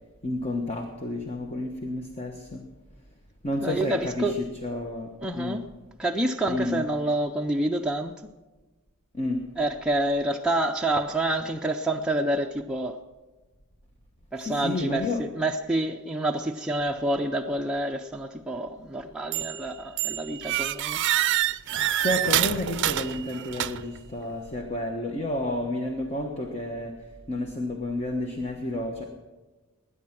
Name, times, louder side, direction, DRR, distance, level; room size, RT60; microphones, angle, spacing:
voice 1, 0.2-2.6 3.4-5.6 6.5-6.9 9.1-9.4 14.4-15.2 21.7-27.0 27.3-29.1, left 1 dB, 30° left, 1.1 m, -31 dB
voice 2, 3.6-4.3 5.2-5.6 6.0-8.2 9.6-13.0 14.3-21.0, right 1 dB, 5° right, 0.5 m, -28 dB
sound 1, 19.3-19.7 20.0-24.0, right 12 dB, 55° right, 0.5 m, -27 dB
20.5 x 9.9 x 6.0 m
head